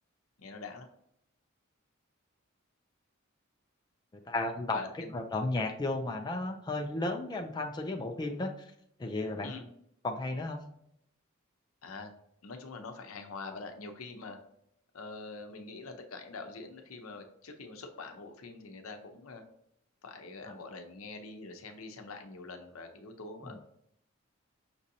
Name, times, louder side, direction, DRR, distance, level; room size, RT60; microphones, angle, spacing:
voice 1, 0.4-0.9 4.7-5.1 9.4-9.7 11.8-12.1 12.4-14.4 14.9-19.4 20.0-23.6, left 3 dB, 80° left, 6 dB, 0.7 m, -44 dB
voice 2, 4.1-4.8 5.1-8.7 9.0-9.5 10.0-10.6 20.4-20.6 23.4-23.6, left 2 dB, 20° left, 3 dB, 0.4 m, -34 dB
6.0 x 2.7 x 2.7 m, 0.73 s
head